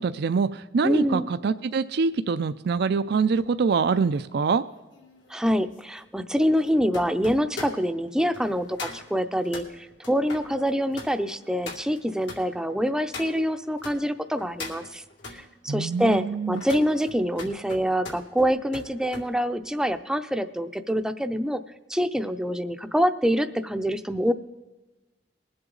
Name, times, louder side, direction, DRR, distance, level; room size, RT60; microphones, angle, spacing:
voice 1, 0.0-4.6 15.7-16.6, right 5 dB, 65° right, 12 dB, 0.4 m, -25 dB
voice 2, 0.8-1.3 5.3-15.0 15.3-21.6 21.9-24.3, equal, 5° right, 9 dB, 0.5 m, -25 dB
sound 1, 3.3-14.0 14.4-15.4 15.9-19.3 19.6-19.9, left 3 dB, 80° left, 2.4 m, -42 dB
21.0 x 7.8 x 3.9 m, 1.1 s
head